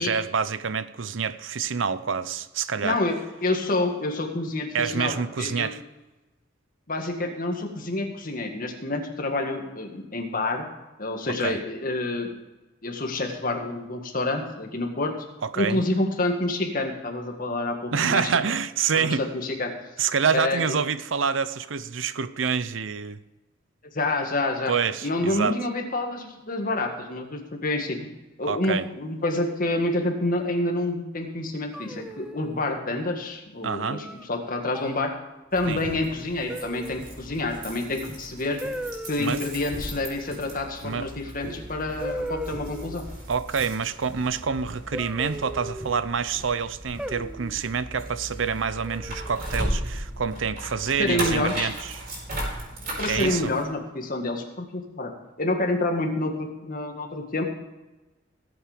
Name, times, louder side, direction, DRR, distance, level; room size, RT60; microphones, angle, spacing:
voice 1, 0.0-3.0 4.7-5.8 11.4-11.6 15.4-15.8 17.9-19.3 20.0-23.2 24.7-25.6 28.4-28.9 33.6-34.0 35.7-35.8 39.2-39.4 40.8-41.1 43.3-52.0 53.1-53.5, right 6 dB, 90° right, 14 dB, 0.7 m, -27 dB
voice 2, 2.8-3.2 3.4-5.7 6.9-10.7 11.0-12.3 12.8-15.2 15.6-18.3 18.9-19.7 20.3-20.8 23.9-24.7 25.0-28.1 28.4-35.1 35.5-38.6 39.1-43.0 51.0-51.7 53.0-57.4, left 2 dB, 45° left, 3 dB, 1.9 m, -28 dB
sound 1, 31.7-32.6 33.9-34.2 34.7-35.1 36.5-37.1 38.6-39.2 41.1-41.2 42.0-43.0 44.9-46.0 47.0-47.6 48.8-49.4, equal, 5° right, 0.5 m, -36 dB
sound 2, 35.5-53.6, right 1 dB, 50° right, 4.9 m, -36 dB
17.5 x 8.0 x 5.1 m, 1.1 s
head